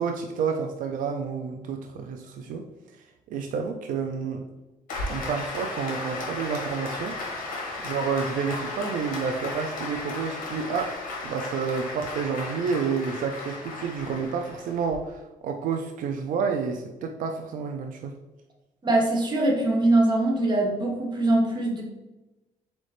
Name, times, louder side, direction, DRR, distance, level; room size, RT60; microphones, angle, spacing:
voice 1, 0.0-2.6 3.3-4.4 5.1-7.5 7.8-11.0 11.2-18.2, right 5 dB, 75° right, 4 dB, 0.4 m, -30 dB
Applause, 4.9-15.0, left 2 dB, 75° left, 1.4 m, -35 dB
voice 2, 18.8-21.8, right 2 dB, 30° right, -1 dB, 1.0 m, -22 dB
4.1 x 4.0 x 3.3 m, 1.1 s
cardioid pair, 155°, 14 cm